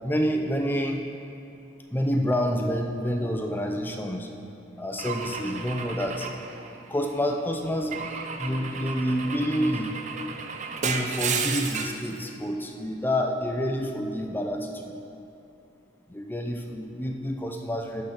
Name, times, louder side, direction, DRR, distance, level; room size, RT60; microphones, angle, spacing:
voice 1, 0.0-1.0 1.9-4.3 4.8-6.3 6.7-8.1 8.4-9.9 10.8-15.0 16.1-18.0, equal, 10° left, 3 dB, 0.6 m, -28 dB
Car / Engine / Glass, 5.0-7.2 7.9-12.1, right 5 dB, 40° right, 0.5 m, -33 dB
11.5 x 4.0 x 6.6 m, 2.7 s
head